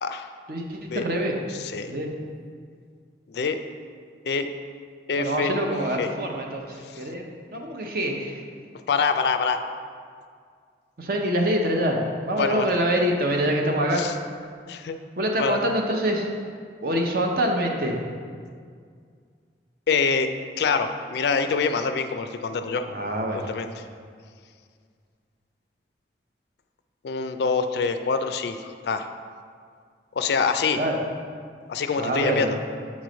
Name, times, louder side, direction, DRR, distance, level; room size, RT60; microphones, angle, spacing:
voice 1, 0.5-1.4 1.9-2.1 5.2-6.7 7.0-7.2 7.5-8.4 11.0-12.0 12.2-14.0 15.2-16.3 16.8-18.0 22.9-23.5 30.8-31.0 32.0-32.6, right 1 dB, 55° right, 1 dB, 0.7 m, -25 dB
voice 2, 1.5-1.9 3.3-3.6 4.2-4.5 5.1-5.5 6.0-6.1 8.9-9.6 12.3-12.7 13.9-14.1 14.7-15.0 15.4-15.6 19.9-20.3 20.6-22.9 23.5-23.7 27.0-29.1 30.2-30.8 31.7-32.6, left 5 dB, 65° left, 8 dB, 0.3 m, -25 dB
7.2 x 3.1 x 5.0 m, 2.1 s
head